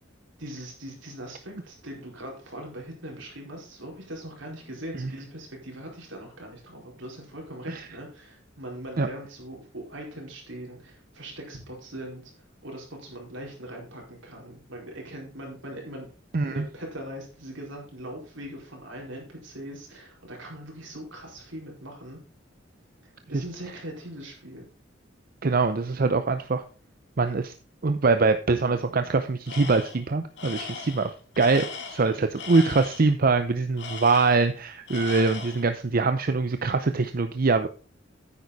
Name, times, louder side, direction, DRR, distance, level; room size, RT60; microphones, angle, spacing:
voice 1, 0.4-16.1 16.4-22.2 23.0-24.6, right 1 dB, 80° right, -1 dB, 4.6 m, -41 dB
voice 2, 16.3-16.6 25.4-26.6 27.2-27.5 27.8-31.1 31.4-37.7, right 3 dB, 50° right, 9 dB, 0.6 m, -23 dB
Tools, 29.5-30.0 30.4-33.1 33.8-34.6 34.9-35.7, left 5 dB, 65° left, 2.2 m, -38 dB
9.6 x 8.7 x 4.1 m, 0.37 s
head